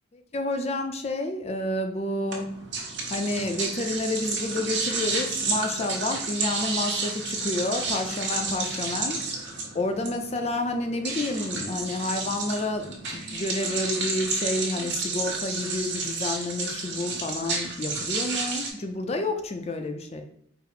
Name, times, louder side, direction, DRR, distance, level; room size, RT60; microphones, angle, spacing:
voice 1, 0.1-2.5 3.1-9.5 9.7-20.2, left 2 dB, 30° left, 5 dB, 0.4 m, -30 dB
sound 1, 2.3-18.7, right 3 dB, 55° right, 1.1 m, -31 dB
4.8 x 2.0 x 4.7 m, 0.71 s
head